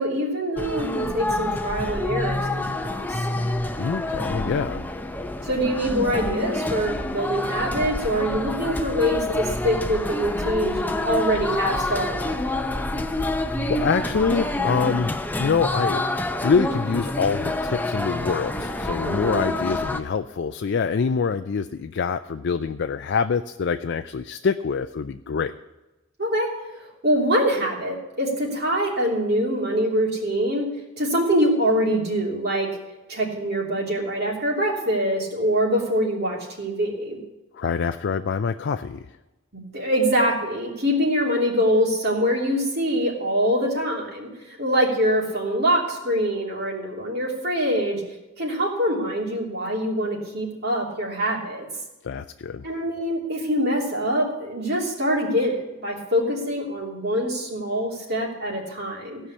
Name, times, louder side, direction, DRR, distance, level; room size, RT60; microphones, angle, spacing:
voice 1, 0.0-3.3 5.4-12.4 19.0-19.5 26.2-26.5 26.7-30.7 31.0-32.7 33.1-37.2 39.5-48.0 48.4-51.7 52.6-59.2, equal, 55° right, -2 dB, 3.1 m, -24 dB
sound 1, 0.6-20.0, left 1 dB, 10° left, 0.6 m, -27 dB
voice 2, 3.8-4.8 13.7-16.0 16.4-25.5 37.5-39.1 52.0-52.7, left 5 dB, 55° left, 8 dB, 0.4 m, -25 dB
16.0 x 5.6 x 8.4 m, 1.1 s
head